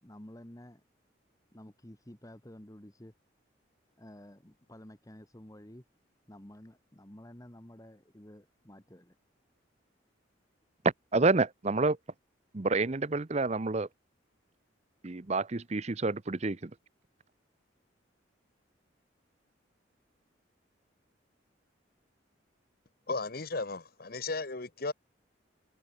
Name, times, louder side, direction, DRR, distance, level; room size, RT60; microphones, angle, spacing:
voice 1, 0.0-0.8 1.5-3.1 4.0-5.8 6.3-9.1, left 1 dB, 15° left, 1.8 m, -51 dB
voice 2, 11.1-12.0 12.5-13.9 15.0-16.7, right 3 dB, 35° right, 0.7 m, -28 dB
voice 3, 23.1-24.9, left 3 dB, 50° left, 1.3 m, -35 dB
head